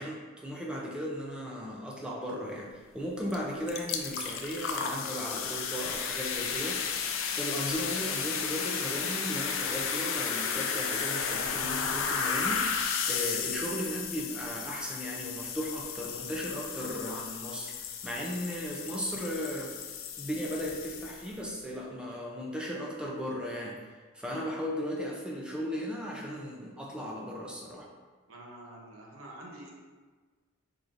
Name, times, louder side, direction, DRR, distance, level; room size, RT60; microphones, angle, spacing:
voice 1, 0.0-7.1 7.4-17.7 18.0-19.7 20.2-23.8 24.1-27.9, equal, 5° right, -3 dB, 0.5 m, -36 dB
sound 1, 3.3-3.4 3.7-21.4, left 6 dB, 80° left, 0.4 m, -33 dB
voice 2, 28.3-29.7, right 1 dB, 85° right, -2 dB, 0.9 m, -47 dB
4.6 x 3.8 x 2.6 m, 1.4 s
head